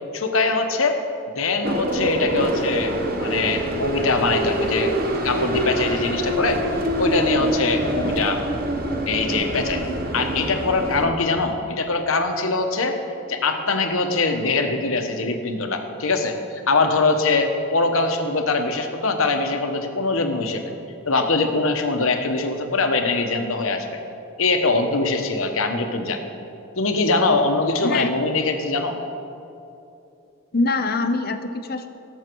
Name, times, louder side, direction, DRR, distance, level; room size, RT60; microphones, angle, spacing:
voice 1, 0.1-1.0 1.4-2.9 3.2-4.9 5.2-6.6 7.0-8.4 9.1-9.8 10.1-13.0 13.3-20.6 21.1-24.0 24.4-26.2 26.8-29.0, left 3 dB, 75° left, 5 dB, 1.1 m, -22 dB
sound 1, 1.6-11.1, right 1 dB, 45° right, 0.9 m, -25 dB
voice 2, 30.5-31.9, left 3 dB, 45° left, 8 dB, 0.7 m, -23 dB
17.0 x 7.3 x 4.6 m, 2.7 s
head